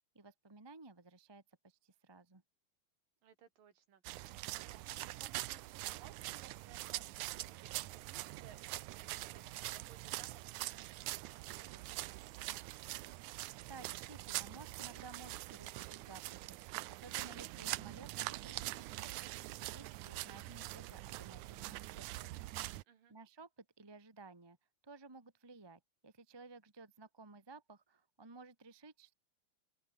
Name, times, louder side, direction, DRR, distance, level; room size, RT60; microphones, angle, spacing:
voice 1, 0.1-2.4 13.6-19.3 19.6-22.4 23.1-24.6 24.8-29.1, right 3 dB, 20° right, 0.6 m, -56 dB
voice 2, 3.2-12.8 22.8-23.1, right 8 dB, 65° right, 4.1 m, -63 dB
sound 1, 4.0-22.8, right 17 dB, 85° right, 1.7 m, -44 dB
open air
omnidirectional pair, 4.3 m